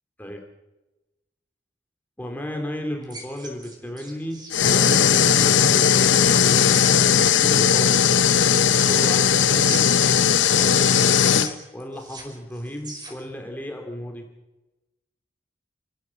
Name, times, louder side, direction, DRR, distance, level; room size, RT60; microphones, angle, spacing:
voice 1, 2.2-6.8 7.3-8.1 8.7-9.8 10.6-14.2, equal, 10° left, 2 dB, 2.7 m, -34 dB
sound 1, 3.0-6.0 7.5-9.4 9.6-11.5 11.8-13.3, right 1 dB, 25° right, 5.1 m, -40 dB
sound 2, 4.5-11.5, left 8 dB, 75° left, 0.8 m, -18 dB
29.0 x 15.5 x 7.5 m, 1.0 s
head